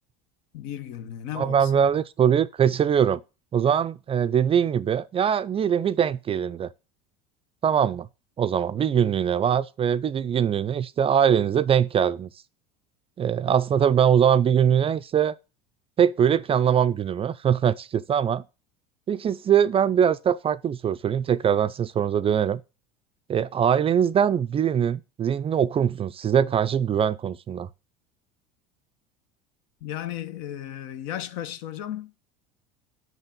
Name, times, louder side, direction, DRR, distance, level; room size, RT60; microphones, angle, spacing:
voice 1, 0.5-1.7 29.8-32.1, left 11 dB, 65° left, 1.0 m, -35 dB
voice 2, 1.4-3.2 3.5-6.7 7.6-8.1 8.4-12.3 13.2-15.3 16.0-18.4 19.1-22.6 23.3-27.7, right 8 dB, 25° right, 0.4 m, -22 dB
6.0 x 5.5 x 7.0 m
supercardioid pair, 100°, 21 cm